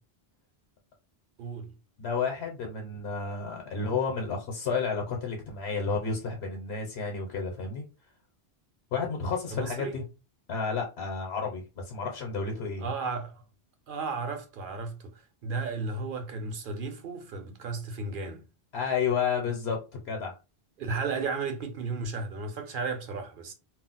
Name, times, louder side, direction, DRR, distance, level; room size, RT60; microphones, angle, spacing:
voice 1, 1.4-1.7 9.5-10.0 12.8-13.4 13.9-18.4 20.8-23.5, right 4 dB, 60° right, 0.7 m, -34 dB
voice 2, 2.0-7.8 8.9-10.0 10.5-12.9 18.7-20.4, left 5 dB, 80° left, 1.0 m, -31 dB
2.3 x 2.0 x 3.8 m
omnidirectional pair, 1.1 m